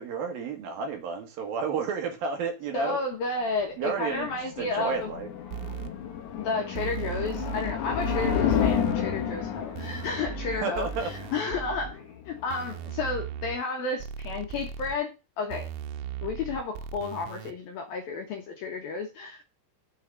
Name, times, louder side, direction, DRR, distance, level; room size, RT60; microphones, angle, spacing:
voice 1, 0.0-3.0 3.8-5.3 10.6-11.1, right 5 dB, 65° right, 4 dB, 2.4 m, -31 dB
voice 2, 2.7-5.1 6.3-15.7 16.2-19.4, left 4 dB, 65° left, 3 dB, 2.5 m, -32 dB
sound 1, 3.9-12.9, left 8 dB, 80° left, 1.7 m, -31 dB
sound 2, 5.5-5.9 6.8-7.7 8.0-9.0 9.8-11.9 12.5-13.6 14.0-15.0 15.5-17.5, right 9 dB, 80° right, 3.2 m, -37 dB
7.4 x 5.6 x 6.6 m, 0.28 s
omnidirectional pair, 5.8 m